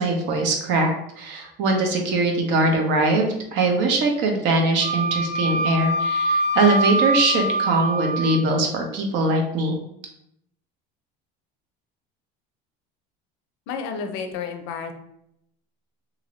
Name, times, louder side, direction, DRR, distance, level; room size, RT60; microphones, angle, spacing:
voice 1, 0.0-9.8, right 2 dB, 65° right, 3 dB, 0.8 m, -22 dB
Wind instrument woodwind instrument, 4.8-8.4, right 1 dB, 40° right, 0.4 m, -24 dB
voice 2, 13.7-14.9, left 5 dB, 75° left, 6 dB, 0.5 m, -31 dB
2.7 x 2.6 x 3.0 m, 0.77 s
supercardioid pair, 110°, 20 cm